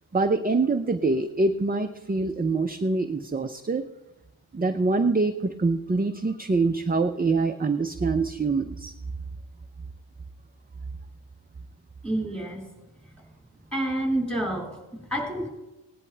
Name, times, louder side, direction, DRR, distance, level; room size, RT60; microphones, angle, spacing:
voice 1, 0.1-3.8 4.5-8.9, right 3 dB, 20° right, 7 dB, 0.5 m, -25 dB
voice 2, 12.0-12.6 13.7-15.5, right 1 dB, ahead, -1 dB, 4.3 m, -28 dB
18.0 x 10.5 x 3.3 m, 1.0 s
wide cardioid pair, 65°, 49 cm